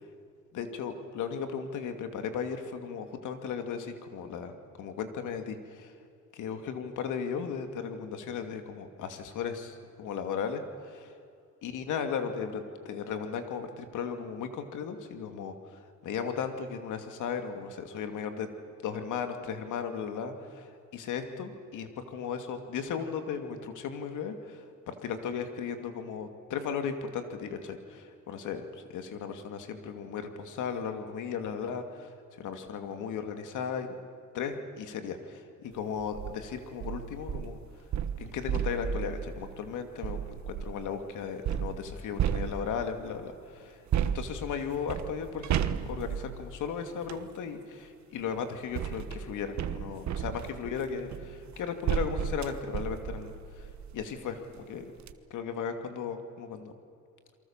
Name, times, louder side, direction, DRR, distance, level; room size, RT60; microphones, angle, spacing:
voice 1, 0.5-5.9 6.3-11.2 11.6-18.5 18.8-33.9 34.3-37.6 38.2-40.2 40.5-54.9 55.3-56.7, left 6 dB, 80° left, 7 dB, 2.5 m, -36 dB
sound 1, 36.0-36.3 36.8-40.8 41.5-43.0 43.9-47.3 48.2-54.1 54.6-54.7 55.0-55.1, right 8 dB, 65° right, 1.3 m, -34 dB
28.5 x 23.5 x 7.4 m, 2.4 s
cardioid pair, 90°, 30 cm